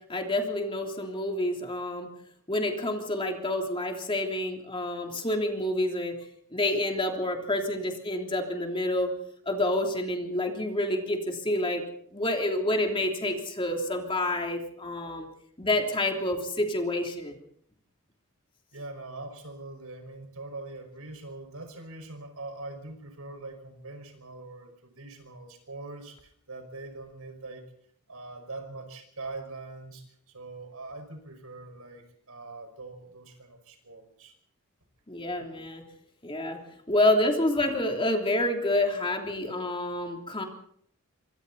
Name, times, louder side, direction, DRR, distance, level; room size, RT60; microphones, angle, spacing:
voice 1, 0.0-2.1 2.5-6.2 6.5-9.1 9.4-11.8 12.1-15.3 15.6-17.4 35.1-35.8 36.2-40.4, left 1 dB, 25° left, 2 dB, 3.2 m, -28 dB
voice 2, 18.7-27.6 28.1-34.4, right 2 dB, 75° right, 6 dB, 5.5 m, -43 dB
26.0 x 25.0 x 4.2 m, 0.65 s
head